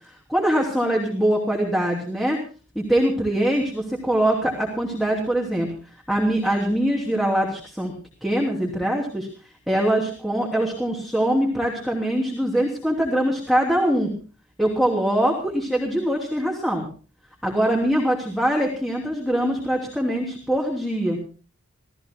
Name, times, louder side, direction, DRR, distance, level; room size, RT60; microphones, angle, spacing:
voice 1, 0.3-2.4 2.7-5.7 6.1-7.9 8.2-9.3 9.7-14.1 14.6-16.9 17.4-21.3, right 1 dB, ahead, -2 dB, 3.0 m, -23 dB
27.5 x 17.5 x 2.2 m, 0.37 s
head